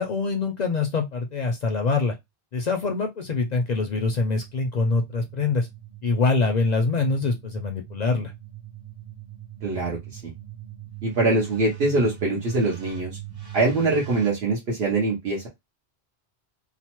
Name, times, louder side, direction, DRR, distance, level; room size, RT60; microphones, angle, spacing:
voice 1, 0.0-2.1 2.5-5.7 6.0-8.3, left 4 dB, 55° left, 0.5 m, -24 dB
sound 1, 3.2-14.3, right 11 dB, 30° right, 0.5 m, -42 dB
voice 2, 9.6-10.3 11.0-13.2 13.5-15.5, right 2 dB, 75° right, 1.1 m, -23 dB
3.0 x 2.0 x 2.9 m
omnidirectional pair, 1.1 m